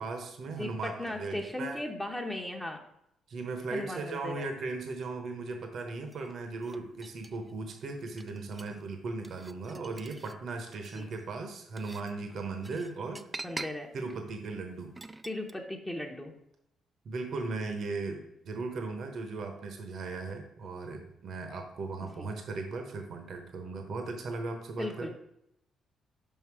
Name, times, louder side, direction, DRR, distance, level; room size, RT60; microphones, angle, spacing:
voice 1, 0.0-1.8 3.3-13.5 13.9-14.9 17.0-25.1, right 3 dB, 60° right, 5 dB, 1.0 m, -37 dB
voice 2, 0.6-2.8 3.7-4.5 10.9-11.1 13.4-13.9 15.2-16.3 22.2-22.3 24.8-25.1, left 1 dB, 10° left, 1 dB, 0.9 m, -37 dB
sound 1, 6.1-7.5 8.0-8.8 9.2-10.3 10.7-15.5, right 2 dB, 20° right, 0.4 m, -46 dB
5.6 x 5.2 x 4.8 m, 0.78 s
cardioid pair, 90°, 0 cm